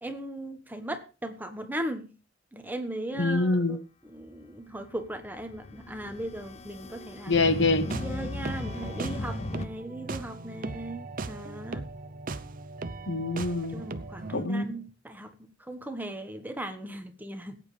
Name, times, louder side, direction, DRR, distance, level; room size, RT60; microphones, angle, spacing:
voice 1, 0.0-2.1 2.5-7.5 7.9-11.9 13.7-17.6, right 1 dB, 10° right, 6 dB, 1.3 m, -38 dB
voice 2, 3.2-3.8 7.3-7.9 13.1-13.7 14.3-14.6, left 3 dB, 70° left, 12 dB, 1.1 m, -25 dB
sound 1, 4.8-9.7, left 2 dB, 35° left, 0.5 m, -37 dB
sound 2, 7.5-14.5, right 3 dB, 50° right, 0.7 m, -38 dB
18.5 x 8.9 x 3.3 m, 0.33 s
head